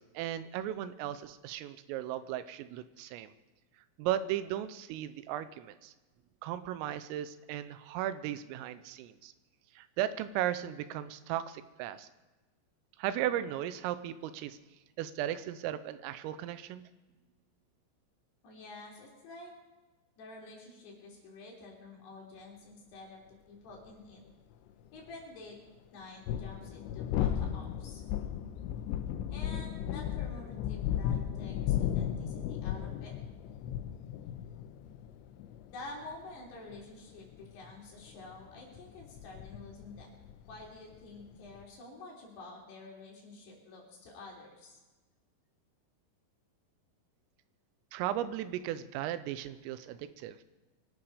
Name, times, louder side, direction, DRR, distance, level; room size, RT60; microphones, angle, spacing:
voice 1, 0.0-3.3 4.0-5.9 6.4-9.3 9.8-12.1 13.0-14.6 15.0-16.8 47.9-50.4, right 12 dB, 85° right, 13 dB, 3.3 m, -36 dB
voice 2, 18.4-19.6 20.2-23.2 23.5-24.2 24.9-25.6 25.9-28.0 29.3-33.1 35.7-40.1 40.5-44.8, left 2 dB, 55° left, -2 dB, 5.4 m, -49 dB
sound 1, 23.9-24.0 26.0-41.6, left 10 dB, 85° left, 2.7 m, -36 dB
24.0 x 12.0 x 4.9 m, 1.2 s
omnidirectional pair, 5.9 m